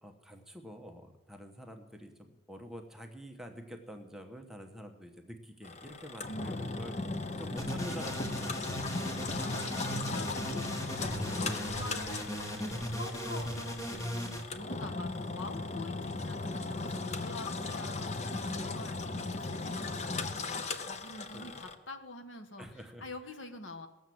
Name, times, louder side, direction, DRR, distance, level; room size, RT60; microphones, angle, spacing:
voice 1, 0.0-9.4 21.3-21.5 22.6-23.0, equal, ahead, 4 dB, 1.0 m, -47 dB
Engine, 5.6-21.8, left 3 dB, 35° left, 0.8 m, -37 dB
voice 2, 6.3-6.7 9.3-23.9, left 2 dB, 70° left, 7 dB, 1.4 m, -46 dB
Destiny bass, 7.6-14.4, equal, 15° left, 1.5 m, -38 dB
18.5 x 7.2 x 7.7 m, 1.1 s
head